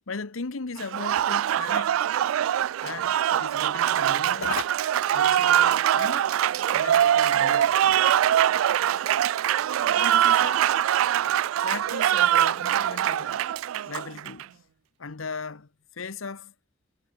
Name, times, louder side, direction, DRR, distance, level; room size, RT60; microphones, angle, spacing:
voice 1, 0.1-2.1 2.8-4.7 5.1-6.3 6.7-8.4 9.9-10.7 11.6-13.5 13.8-14.5 15.0-16.5, left 4 dB, 85° left, 1.0 m, -37 dB
Applause, 0.8-14.4, right 11 dB, 90° right, 0.3 m, -23 dB
head